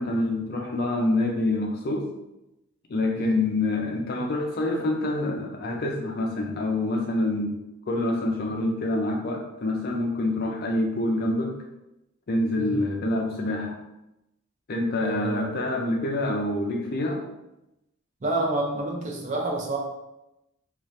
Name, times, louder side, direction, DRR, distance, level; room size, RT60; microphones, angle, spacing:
voice 1, 0.0-2.1 2.9-7.6 7.9-11.6 12.3-13.8 14.7-17.2, left 2 dB, 45° left, 2 dB, 0.4 m, -26 dB
voice 2, 15.0-15.5 18.2-19.8, right 2 dB, 35° right, -1 dB, 0.6 m, -28 dB
2.7 x 2.4 x 3.1 m, 0.91 s
head